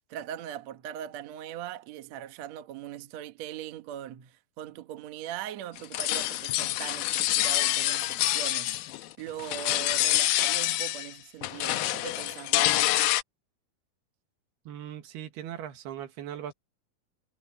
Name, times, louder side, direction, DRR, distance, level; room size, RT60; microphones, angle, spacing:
voice 1, 0.1-12.8, right 11 dB, 60° right, 1.9 m, -40 dB
sound 1, 5.8-9.1 9.4-11.1 11.4-13.2, left 16 dB, 80° left, 2.4 m, -27 dB
voice 2, 14.7-16.5, right 10 dB, 85° right, 3.8 m, -39 dB
omnidirectional pair, 4.5 m